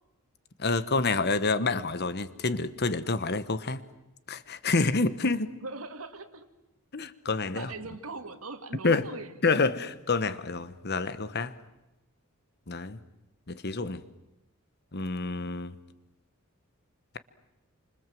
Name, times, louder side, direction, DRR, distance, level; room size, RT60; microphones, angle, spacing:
voice 1, 0.6-3.8 4.3-5.6 6.9-7.7 8.8-9.1 9.4-11.5 12.7-13.0 13.5-14.0 14.9-15.8, left 3 dB, 50° left, 13 dB, 1.3 m, -28 dB
voice 2, 5.6-6.5 7.5-9.5, right 3 dB, 85° right, 8 dB, 2.1 m, -40 dB
29.0 x 26.0 x 7.8 m, 0.97 s
head